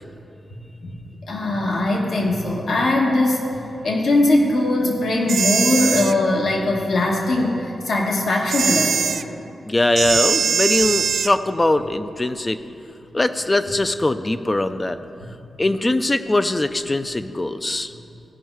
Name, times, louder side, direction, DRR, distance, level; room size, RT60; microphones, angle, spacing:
voice 1, 1.3-3.4 3.8-9.0, left 2 dB, 70° left, -1 dB, 1.4 m, -20 dB
sound 1, 5.3-6.1 8.5-9.2 10.0-11.3, right 6 dB, 80° right, 0.3 m, -21 dB
voice 2, 9.7-12.6 13.1-15.0 15.6-17.9, left 2 dB, 25° left, 10 dB, 0.5 m, -21 dB
16.0 x 5.5 x 4.7 m, 2.7 s
cardioid pair, 75°, 0 cm